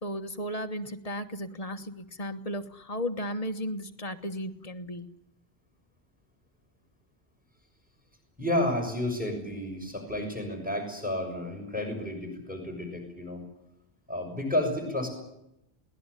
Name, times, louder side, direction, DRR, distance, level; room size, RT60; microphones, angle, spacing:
voice 1, 0.0-5.1, equal, 35° left, 9 dB, 1.4 m, -35 dB
voice 2, 8.4-13.4 14.1-15.1, left 1 dB, 10° right, 5 dB, 6.5 m, -31 dB
22.0 x 18.5 x 9.9 m, 0.83 s
omnidirectional pair, 1.1 m